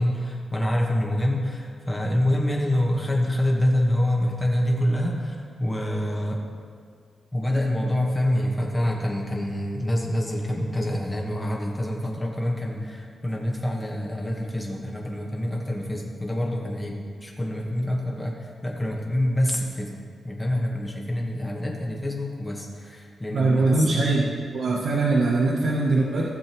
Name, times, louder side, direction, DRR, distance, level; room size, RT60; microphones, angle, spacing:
voice 1, 0.0-6.4 7.3-20.0 20.2-24.1, left 1 dB, 10° left, -1 dB, 1.2 m, -26 dB
voice 2, 23.3-24.3 24.5-26.3, right 3 dB, 70° right, -3 dB, 0.9 m, -21 dB
15.5 x 6.7 x 3.0 m, 2.2 s
wide cardioid pair, 165°, 0 cm